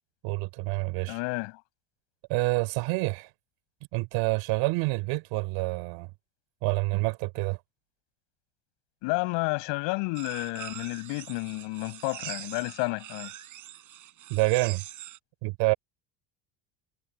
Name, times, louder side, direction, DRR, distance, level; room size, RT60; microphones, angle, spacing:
voice 1, 0.2-1.2 2.3-3.3 3.9-6.1 6.6-7.6 14.3-14.8 15.4-15.7, right 25 dB, 90° right, 3.6 m, -27 dB
voice 2, 1.1-1.5 9.0-13.3, left 27 dB, 85° left, 7.0 m, -31 dB
sound 1, 10.2-15.2, right 13 dB, 45° right, 4.3 m, -43 dB
cardioid pair, 155°, 42 cm